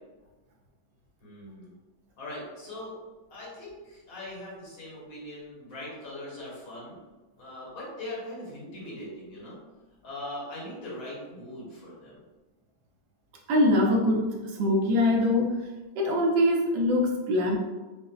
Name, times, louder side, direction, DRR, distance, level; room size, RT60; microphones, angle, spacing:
voice 1, 1.2-1.7 2.2-2.9 3.3-7.0 7.4-9.5 10.0-12.2, left 1 dB, 75° left, -7 dB, 2.1 m, -40 dB
voice 2, 13.5-15.7 16.0-17.6, left 1 dB, 75° right, 0 dB, 1.2 m, -23 dB
4.9 x 2.0 x 2.3 m, 1.2 s
omnidirectional pair, 2.2 m